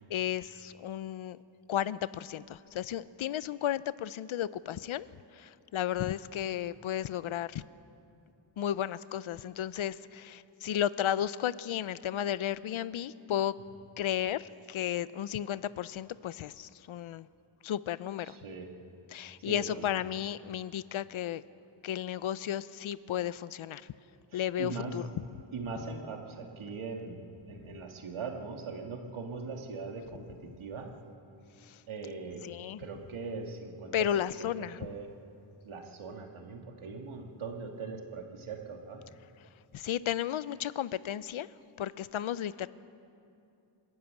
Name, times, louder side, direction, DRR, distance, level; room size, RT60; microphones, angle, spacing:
voice 1, 0.0-1.4 1.7-5.1 5.3-7.6 8.6-13.5 14.0-17.3 17.6-18.4 19.1-21.4 21.8-23.9 24.3-25.0 31.6-31.8 32.4-32.8 33.9-34.8 39.7-41.5 41.8-42.7, left 10 dB, 85° left, 17 dB, 0.7 m, -33 dB
voice 2, 18.3-18.7 19.4-19.8 24.3-24.9 25.5-30.9 31.9-32.4 32.8-34.5 34.8-35.1 35.6-39.0, right 4 dB, 90° right, 2 dB, 2.5 m, -41 dB
27.0 x 12.5 x 9.0 m, 2.6 s
wide cardioid pair, 170°, 47 cm